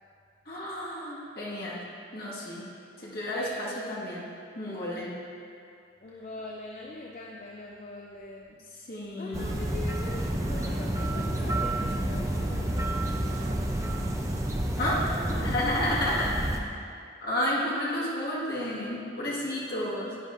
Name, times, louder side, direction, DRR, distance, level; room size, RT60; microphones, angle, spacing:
voice 1, 0.5-1.8 2.1-2.6 3.0-4.3 4.5-5.2 8.9-9.6 14.8-16.3 17.2-20.2, left 1 dB, 55° left, -6 dB, 1.8 m, -31 dB
voice 2, 3.3-3.7 6.0-8.7 9.2-13.9 17.5-17.9, left 2 dB, 40° left, -2 dB, 0.5 m, -42 dB
sound 1, 9.3-16.6, right 1 dB, 15° right, 0.5 m, -29 dB
10.0 x 9.3 x 2.6 m, 2.4 s
head